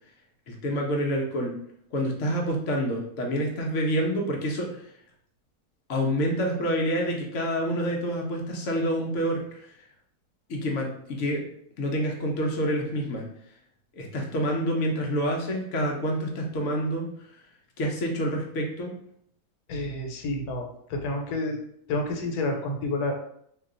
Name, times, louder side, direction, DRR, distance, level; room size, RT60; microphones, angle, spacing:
voice 1, 0.5-1.6 1.9-4.8 5.9-9.7 10.5-11.4 11.8-13.3 14.0-17.1 17.8-19.0, equal, 60° left, 0 dB, 0.9 m, -27 dB
voice 2, 19.7-21.6 21.9-23.1, left 2 dB, 85° left, 3 dB, 1.2 m, -29 dB
2.7 x 2.2 x 3.7 m, 0.69 s
omnidirectional pair, 1.7 m